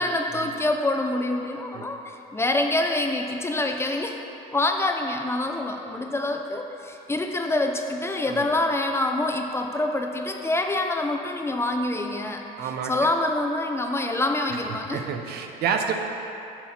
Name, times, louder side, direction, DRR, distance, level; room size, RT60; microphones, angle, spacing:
voice 1, 0.0-4.2 4.5-15.1, left 2 dB, 15° left, 3 dB, 0.6 m, -26 dB
voice 2, 12.6-12.9 14.9-15.9, right 7 dB, 70° right, 4 dB, 0.7 m, -28 dB
8.6 x 5.8 x 4.3 m, 2.8 s
cardioid pair, 110°, 17 cm